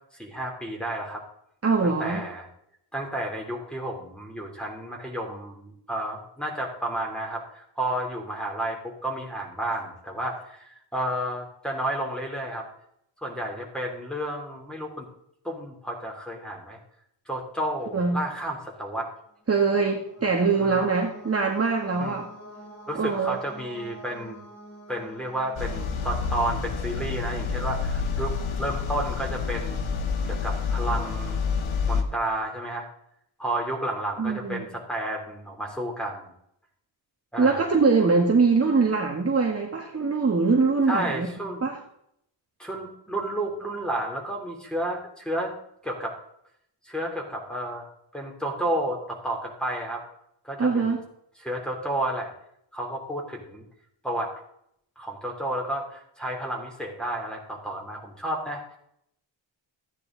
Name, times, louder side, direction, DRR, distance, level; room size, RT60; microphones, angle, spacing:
voice 1, 0.2-1.2 1.8-2.5 2.9-12.6 13.2-15.1 15.4-16.8 17.2-19.1 20.6-20.8 22.0-22.2 22.9-24.4 24.9-29.9 30.2-31.4 31.9-32.9 33.4-36.3 37.3-37.7 40.9-41.6 42.6-45.6 45.8-46.1 46.8-47.9 48.1-50.0 50.4-50.9 51.4-52.3 52.7-53.6 54.0-54.3 55.0-58.6, right 1 dB, ahead, 0 dB, 3.4 m, -31 dB
voice 2, 1.6-2.2 17.9-18.2 19.5-22.3 23.0-23.4 34.2-34.7 37.4-41.3 41.6-41.7 50.6-51.0, right 4 dB, 30° right, 0 dB, 1.7 m, -23 dB
sound 1, 19.4-27.1, equal, 35° left, 6.1 m, -47 dB
sound 2, 25.6-32.0, left 5 dB, 90° left, 1.7 m, -28 dB
14.5 x 9.9 x 4.0 m, 0.73 s
wide cardioid pair, 120°, 46 cm